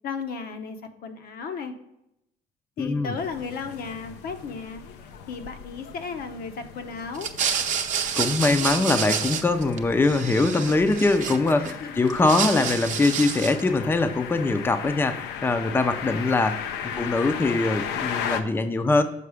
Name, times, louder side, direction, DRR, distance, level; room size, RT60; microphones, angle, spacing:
voice 1, 0.0-1.7 2.8-4.8 5.3-7.3 8.4-8.7 11.6-12.1 14.2-14.3, left 5 dB, 65° left, 8 dB, 0.9 m, -35 dB
voice 2, 2.8-3.1 8.2-19.0, left 3 dB, 15° left, 8 dB, 0.5 m, -23 dB
sound 1, 3.2-18.4, left 8 dB, 90° left, 0.6 m, -36 dB
sound 2, 7.1-9.8 10.0-11.7 12.1-13.7, right 7 dB, 45° right, 0.7 m, -29 dB
6.8 x 4.7 x 4.9 m, 0.83 s
cardioid pair, 110°, 17 cm